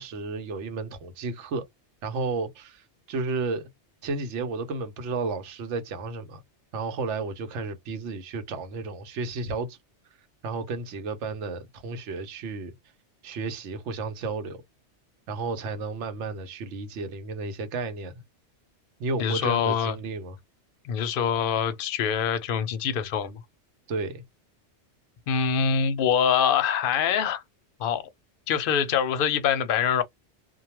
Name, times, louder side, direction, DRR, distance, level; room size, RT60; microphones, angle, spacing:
voice 1, 0.0-1.6 2.0-3.6 4.0-6.4 6.7-9.8 10.4-12.7 13.2-14.6 15.3-18.1 19.0-20.4 23.9-24.2, right 3 dB, 90° right, 1.0 m, -32 dB
voice 2, 19.2-19.9 20.8-23.4 25.3-27.4 27.8-28.0 28.5-30.0, left 7 dB, 60° left, 0.7 m, -24 dB
2.2 x 2.2 x 2.9 m
omnidirectional pair, 1.2 m